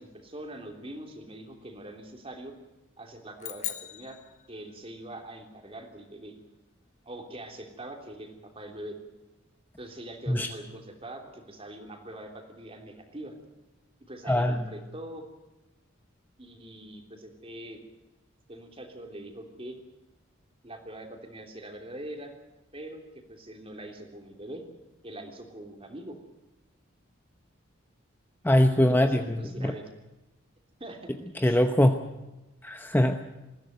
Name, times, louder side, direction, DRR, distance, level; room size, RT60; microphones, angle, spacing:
voice 1, 0.0-2.6 3.0-4.2 4.5-6.4 7.0-9.0 9.8-13.3 14.1-15.2 16.4-17.9 18.5-19.8 20.6-22.3 22.7-24.6 25.0-26.2 28.9-29.9 30.8-31.1 31.4-31.6, right 1 dB, 30° right, 4 dB, 3.2 m, -43 dB
sound 1, 3.4-5.1, left 11 dB, 35° left, 1.5 m, -39 dB
voice 2, 14.3-14.7 28.4-29.7 31.4-32.0 32.6-33.2, left 1 dB, 10° left, 6 dB, 0.9 m, -22 dB
21.0 x 15.0 x 9.2 m, 1.0 s
head